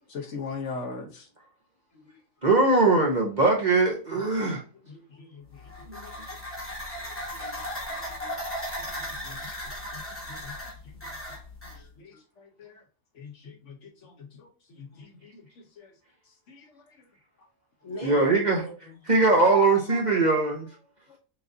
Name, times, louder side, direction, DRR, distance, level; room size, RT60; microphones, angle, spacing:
voice 1, 0.1-1.3 4.9-5.4 6.0-6.1 8.9-9.4 10.3-10.5 11.3-11.4 12.0-12.1 12.6-12.7 13.2-14.5 14.8-15.4 15.8-15.9 16.5-16.7, left 4 dB, 65° left, 1.1 m, -40 dB
voice 2, 2.4-4.6 18.0-18.6 19.1-20.7, right 3 dB, 40° right, 0.8 m, -21 dB
sound 1, 5.5-11.8, equal, 10° left, 1.2 m, -36 dB
voice 3, 8.0-8.4 9.3-10.1 10.4-10.5 11.7-12.2 14.9-15.0 17.8-19.0, equal, 25° left, 1.4 m, -45 dB
5.9 x 2.6 x 2.6 m
omnidirectional pair, 1.4 m